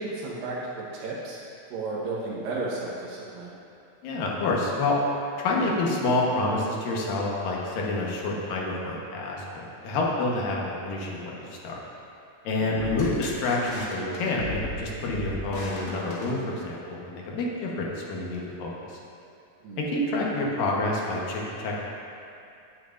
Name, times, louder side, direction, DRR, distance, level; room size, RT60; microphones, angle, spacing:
voice 1, 0.0-1.4 1.7-3.5 12.8-12.9 19.6-19.9, right 3 dB, 80° right, -6 dB, 2.9 m, -33 dB
voice 2, 4.0-5.0 5.4-11.8 12.4-18.9 19.8-21.7, left 2 dB, 75° left, -3 dB, 2.8 m, -28 dB
sound 1, 12.8-16.9, left 2 dB, 50° left, 1.4 m, -36 dB
17.5 x 7.0 x 2.6 m, 2.6 s
omnidirectional pair, 4.0 m